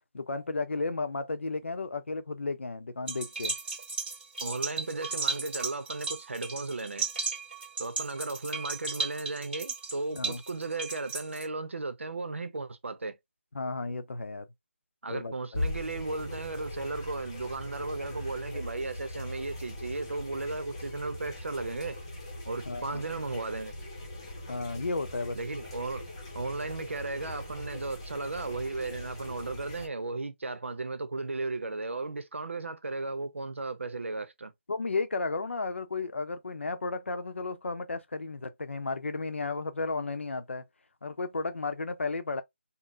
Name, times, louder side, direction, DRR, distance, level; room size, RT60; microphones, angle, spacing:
voice 1, 0.1-3.5 10.2-10.4 13.5-14.5 15.1-15.6 22.7-23.0 24.5-25.4 34.7-40.6 41.0-42.4, left 3 dB, 70° left, 0.7 m, -33 dB
sound 1, 3.1-11.5, right 4 dB, 45° right, 1.6 m, -35 dB
voice 2, 4.4-7.1 7.8-13.2 15.0-22.0 22.5-23.7 25.3-26.0 26.3-34.5, right 3 dB, 75° right, 0.8 m, -35 dB
sound 2, 15.5-29.9, left 1 dB, 25° left, 0.8 m, -40 dB
3.8 x 2.1 x 2.5 m
figure-of-eight pair, 170°, 7 cm